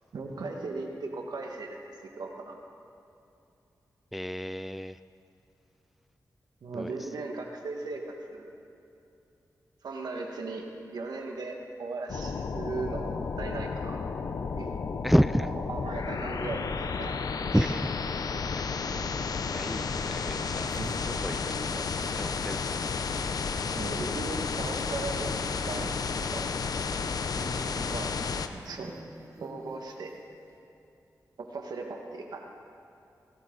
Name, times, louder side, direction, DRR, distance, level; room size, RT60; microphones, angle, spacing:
voice 1, 0.1-1.8 2.2-2.6 6.6-8.0 8.3-8.5 9.8-14.0 14.6-14.7 15.4-17.2 17.5-17.7 20.8-21.2 23.8-26.5 27.9-28.2 28.6-28.9 29.4-30.1 31.4-32.5, right 3 dB, 90° right, 2 dB, 1.8 m, -37 dB
voice 2, 4.1-5.0 6.7-7.1 15.0-15.5 17.5-17.9 18.6-18.9 19.5-20.7 21.1-21.9 22.1-22.7 27.4-28.0, equal, ahead, 14 dB, 0.3 m, -30 dB
sound 1, 12.1-28.5, left 5 dB, 70° left, 0.7 m, -32 dB
sound 2, 18.0-18.1 18.6-19.3 19.6-19.7 20.6-26.9 27.2-27.3 27.9-28.0 28.5-30.5, right 2 dB, 55° right, 2.2 m, -51 dB
18.0 x 17.0 x 4.1 m, 2.7 s
wide cardioid pair, 80°, 7 cm